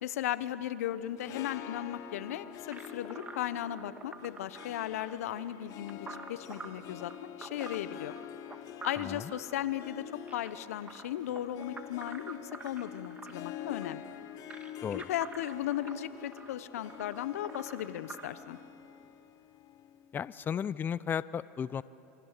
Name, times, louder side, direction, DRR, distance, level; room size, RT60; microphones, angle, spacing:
voice 1, 0.0-7.1 7.4-8.2 8.8-10.0 10.3-14.0 14.9-18.6, left 12 dB, 80° left, 14 dB, 1.0 m, -36 dB
Harp, 1.0-20.4, left 11 dB, 45° left, 1.2 m, -47 dB
sound 1, 2.7-18.3, right 4 dB, 20° right, 1.7 m, -48 dB
voice 2, 9.0-9.3 14.8-15.1 20.1-21.8, left 8 dB, 25° left, 18 dB, 0.5 m, -34 dB
27.5 x 24.0 x 6.8 m, 2.8 s
hypercardioid pair, 105°, 8 cm